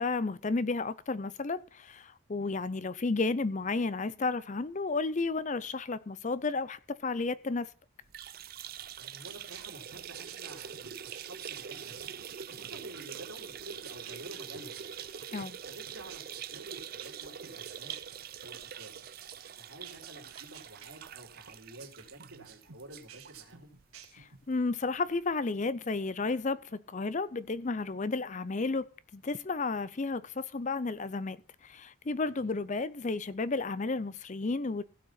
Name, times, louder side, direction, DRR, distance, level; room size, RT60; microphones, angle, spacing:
voice 1, 0.0-7.7 15.3-15.6 24.1-28.9 29.1-34.8, left 3 dB, 35° left, 0.5 m, -32 dB
sound 1, 8.0-23.4 23.8-23.9 24.2-24.3 25.3-25.4, right 8 dB, 45° right, 0.5 m, -44 dB
voice 2, 9.0-15.0 15.7-17.9 18.4-19.0 19.6-23.7 32.4-32.5, right 1 dB, 70° right, 3.6 m, -50 dB
sound 2, 9.2-24.5, right 8 dB, 90° right, 1.8 m, -52 dB
16.0 x 6.4 x 5.9 m
head